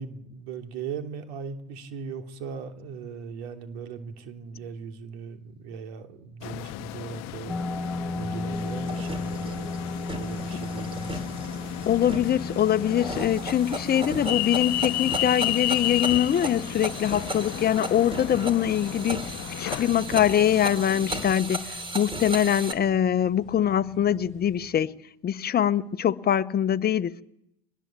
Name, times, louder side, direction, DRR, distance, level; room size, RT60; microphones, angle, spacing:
voice 1, 0.0-7.6 8.1-9.8 10.1-11.3, right 5 dB, 80° right, 3.1 m, -38 dB
sound 1, 6.4-21.3, left 19 dB, 55° left, 0.9 m, -33 dB
sound 2, 7.5-24.7, left 2 dB, ahead, 1.3 m, -38 dB
sound 3, 8.5-22.7, right 1 dB, 15° right, 3.2 m, -36 dB
voice 2, 11.9-19.3 19.6-25.0 25.2-27.2, left 10 dB, 30° left, 1.0 m, -23 dB
24.0 x 20.0 x 7.6 m
supercardioid pair, 100°, 31 cm